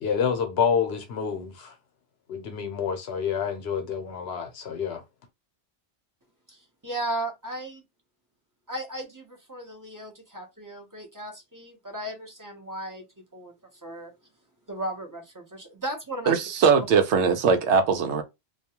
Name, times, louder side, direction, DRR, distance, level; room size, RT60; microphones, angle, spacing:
voice 1, 0.0-1.7 2.3-5.0, left 7 dB, 65° left, 0.9 m, -28 dB
voice 2, 6.8-7.8 8.7-13.0 13.3-13.5 13.8-14.1 14.7-16.4, right 1 dB, 20° right, 0.6 m, -35 dB
voice 3, 16.3-18.2, right 5 dB, 80° right, 0.9 m, -21 dB
2.3 x 2.3 x 2.8 m
omnidirectional pair, 1.2 m